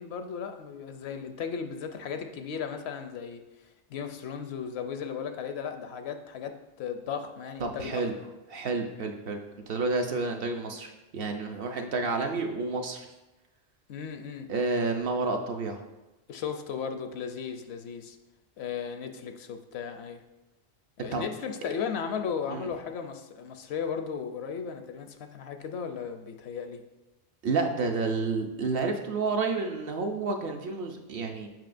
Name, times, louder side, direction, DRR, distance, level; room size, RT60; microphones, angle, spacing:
voice 1, 0.0-3.4 3.9-8.1 13.9-14.5 16.3-18.2 18.6-20.2 21.0-26.8, left 6 dB, 70° left, 7 dB, 0.8 m, -36 dB
voice 2, 7.6-8.1 8.5-9.4 9.7-13.1 14.5-15.8 21.1-21.2 22.5-22.7 27.4-31.5, right 3 dB, 60° right, 3 dB, 0.8 m, -30 dB
7.6 x 5.4 x 2.5 m, 1.0 s
omnidirectional pair, 1.2 m